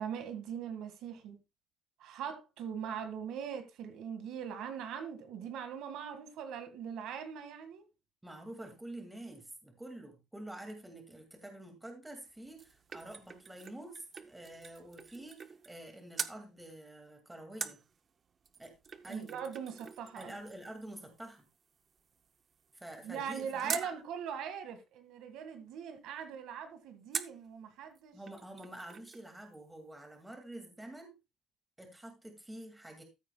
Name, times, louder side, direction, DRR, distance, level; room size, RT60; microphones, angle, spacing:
voice 1, 0.0-1.4 2.0-7.8 19.0-20.3 23.0-28.2, right 7 dB, 75° right, 1.7 m, -41 dB
voice 2, 8.2-17.8 18.6-18.7 19.0-19.4 20.1-21.4 22.7-23.9 28.1-31.1 31.8-33.0, right 1 dB, 5° right, 2.1 m, -48 dB
sound 1, 12.2-15.9 16.1-16.4 17.6-23.9 27.1-27.5 28.0-28.1 28.3-29.3 29.5-29.6, right 6 dB, 30° right, 0.5 m, -45 dB
14.0 x 8.8 x 2.3 m
cardioid pair, 175°, 0 cm